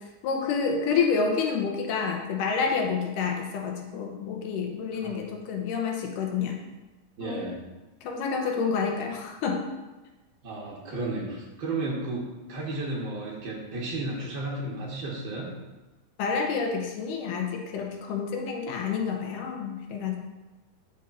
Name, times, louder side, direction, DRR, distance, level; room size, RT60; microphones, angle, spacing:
voice 1, 0.2-6.6 7.2-7.5 8.0-9.6 16.2-20.2, left 5 dB, 80° left, 2 dB, 2.5 m, -28 dB
voice 2, 7.2-7.6 10.4-15.5, right 2 dB, 55° right, -4 dB, 1.4 m, -33 dB
12.5 x 5.6 x 2.6 m, 1.1 s
omnidirectional pair, 3.8 m